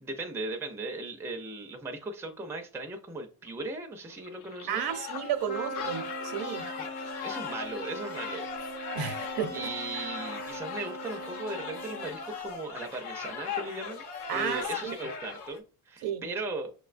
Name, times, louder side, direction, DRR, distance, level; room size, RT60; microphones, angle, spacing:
voice 1, 0.0-4.9 6.8-6.9 7.2-8.5 9.5-14.0 14.3-16.7, right 2 dB, 5° right, 0.4 m, -38 dB
sound 1, 3.5-3.7 4.0-11.6 11.9-12.0 12.6-14.1, left 7 dB, 60° left, 0.6 m, -49 dB
sound 2, 4.7-15.6, left 6 dB, 90° left, 0.9 m, -39 dB
voice 2, 4.7-6.7 8.9-9.5 14.3-14.9 16.0-16.2, right 8 dB, 75° right, 0.7 m, -32 dB
Trumpet, 5.5-12.4, equal, 40° left, 0.9 m, -40 dB
6.3 x 2.2 x 2.4 m
cardioid pair, 135°, 38 cm